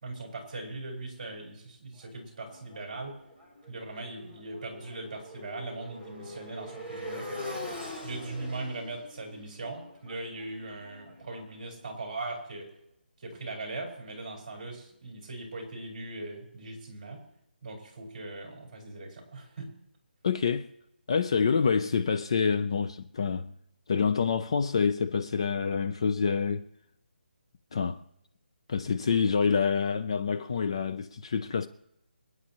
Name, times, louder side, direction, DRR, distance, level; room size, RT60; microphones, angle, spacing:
voice 1, 0.0-3.2 3.7-7.4 8.0-12.7 13.2-17.2 17.6-19.7, right 2 dB, 30° right, 4.9 m, -40 dB
Motorcycle, 2.0-11.9, left 1 dB, 15° left, 2.6 m, -43 dB
voice 2, 20.2-20.7 21.1-23.5 23.9-26.7 27.7-28.0 28.7-31.7, left 6 dB, 30° left, 0.5 m, -27 dB
26.5 x 9.6 x 3.0 m
hypercardioid pair, 175°, 6 cm